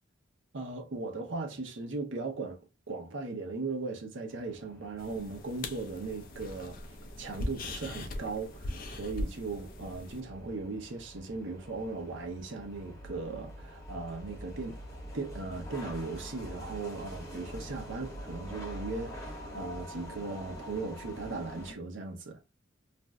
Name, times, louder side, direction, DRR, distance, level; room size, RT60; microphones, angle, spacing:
voice 1, 0.5-2.6 2.9-6.8 7.2-14.8 15.1-22.4, right 3 dB, 75° right, 0.7 m, -38 dB
sound 1, 4.3-21.7, equal, 15° left, 0.9 m, -46 dB
sound 2, 5.0-10.2, left 1 dB, 45° left, 0.5 m, -40 dB
2.5 x 2.1 x 3.3 m
head